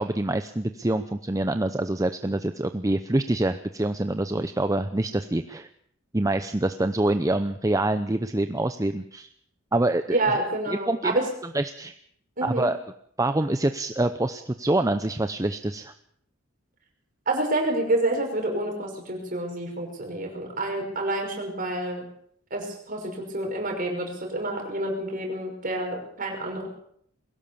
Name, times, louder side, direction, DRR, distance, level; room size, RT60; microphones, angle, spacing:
voice 1, 0.0-5.7 6.1-9.3 9.7-10.2 10.7-11.2 11.5-11.9 12.4-12.8 13.2-15.9, right 1 dB, 15° right, 9 dB, 0.7 m, -26 dB
voice 2, 10.1-11.2 12.4-12.7 17.3-22.1 22.5-26.7, right 1 dB, 40° right, 2 dB, 5.7 m, -28 dB
22.0 x 17.0 x 7.1 m, 0.67 s
head